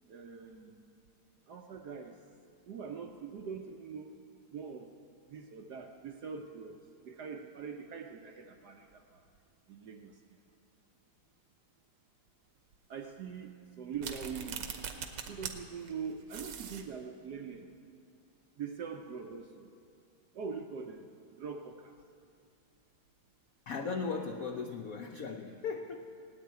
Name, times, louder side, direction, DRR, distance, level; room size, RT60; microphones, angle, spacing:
voice 1, 0.1-0.8 1.5-2.1 2.7-4.1 4.5-4.9 5.3-6.8 7.0-9.2 9.7-10.1 12.9-14.7 15.3-17.7 18.6-19.7 20.3-21.1 21.4-21.9, right 6 dB, 65° right, 4 dB, 1.0 m, -43 dB
sound 1, 13.9-15.5 15.9-16.0 16.3-16.9, right 7 dB, 85° right, 2.0 m, -41 dB
voice 2, 23.7-26.0, left 4 dB, 80° left, 5 dB, 0.7 m, -37 dB
17.5 x 9.0 x 9.3 m, 2.4 s
omnidirectional pair, 2.4 m